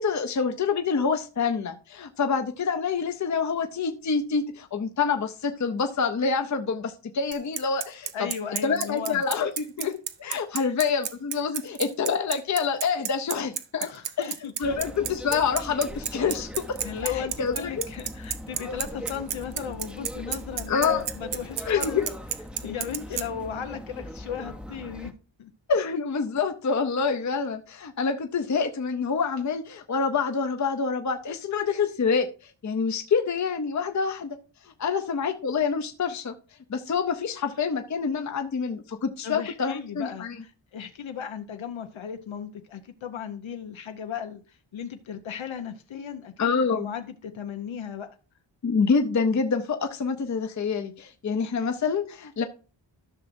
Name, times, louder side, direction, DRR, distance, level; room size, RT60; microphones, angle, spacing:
voice 1, 0.0-8.3 8.6-13.9 14.2-14.3 14.6-16.8 17.0-17.8 18.7-18.8 20.7-21.0 21.6-22.1 22.6-22.7 25.7-34.4 34.8-36.3 36.7-40.4 46.4-46.9 48.6-52.4, left 5 dB, 40° left, 0.6 m, -27 dB
Bicycle, 7.3-23.2, right 9 dB, 65° right, 0.7 m, -31 dB
voice 2, 8.1-9.2 10.5-10.7 13.8-14.7 16.8-22.0 22.6-25.1 25.4-25.5 39.2-44.4 44.7-48.1, left 8 dB, 85° left, 0.9 m, -36 dB
sound 1, 14.6-25.1, equal, ahead, 0.6 m, -39 dB
13.5 x 6.1 x 2.6 m
wide cardioid pair, 150°, 46 cm